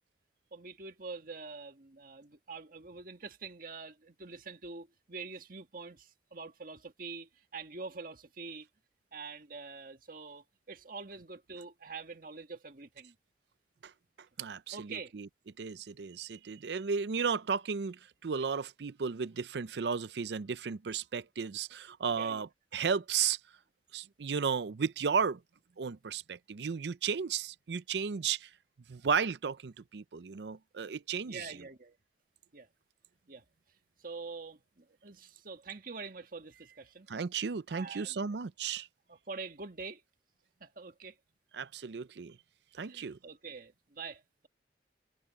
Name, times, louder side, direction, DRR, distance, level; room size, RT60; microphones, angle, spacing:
voice 1, 0.5-8.7 9.1-13.2 14.7-15.1 22.1-22.5 31.3-32.0 32.5-32.7 33.3-33.4 34.0-37.1 37.7-38.4 39.1-40.0 40.6-41.2 42.8-44.5, right 4 dB, 50° right, 1.7 m, -45 dB
voice 2, 14.4-15.3 15.6-23.4 23.9-25.4 25.8-28.5 28.9-31.6 37.1-38.9 41.5-42.4 42.7-43.2, right 6 dB, 75° right, 0.5 m, -34 dB
head